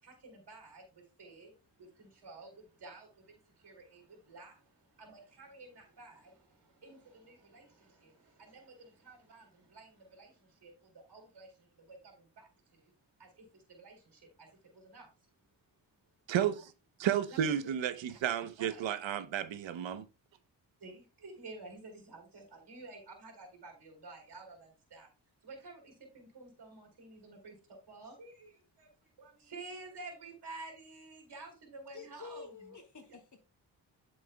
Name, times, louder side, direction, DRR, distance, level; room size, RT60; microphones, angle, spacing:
voice 1, 0.0-12.9 13.2-15.1 17.3-17.5 18.1-18.2 18.6-18.8 20.8-25.1 25.4-27.6 27.9-32.8, right 3 dB, 60° right, 3.7 m, -52 dB
voice 2, 16.3-16.7 17.0-20.1, right 9 dB, 75° right, 1.0 m, -32 dB
voice 3, 31.9-33.4, left 5 dB, 40° left, 2.8 m, -49 dB
8.8 x 6.7 x 2.3 m
supercardioid pair, 50°, 46 cm